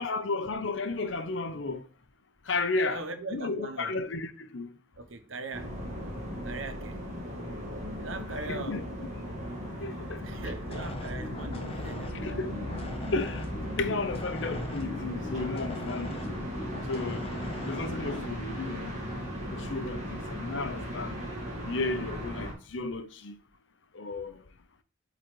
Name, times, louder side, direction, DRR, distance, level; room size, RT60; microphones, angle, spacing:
voice 1, 0.0-1.8 2.5-3.0 3.3-4.7 8.5-8.8 9.8-10.2 12.2-12.5 13.1-13.5 13.7-16.1 16.9-17.3 17.6-18.9 19.5-21.2 21.6-23.3 23.9-24.4, left 3 dB, 65° left, 0.7 m, -33 dB
voice 2, 2.7-4.0 5.0-5.8 6.4-7.1 8.0-9.0 9.7-12.3, right 3 dB, 75° right, 0.9 m, -41 dB
sound 1, 5.5-22.5, equal, 35° right, 2.0 m, -37 dB
sound 2, 10.7-18.3, left 1 dB, 30° left, 0.7 m, -41 dB
8.7 x 4.0 x 3.1 m
head